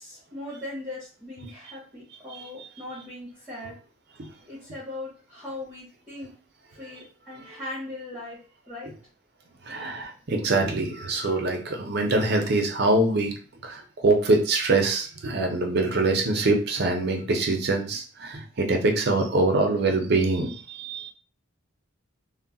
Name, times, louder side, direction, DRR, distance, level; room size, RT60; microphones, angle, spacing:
voice 1, 0.0-3.8 4.5-6.3 6.7-8.4 8.7-8.9, left 2 dB, 10° right, -7 dB, 0.7 m, -39 dB
voice 2, 2.3-2.7 4.2-4.3 6.8-7.6 9.6-21.1, right 2 dB, 50° right, 3 dB, 0.5 m, -24 dB
2.2 x 2.0 x 3.8 m, 0.37 s
head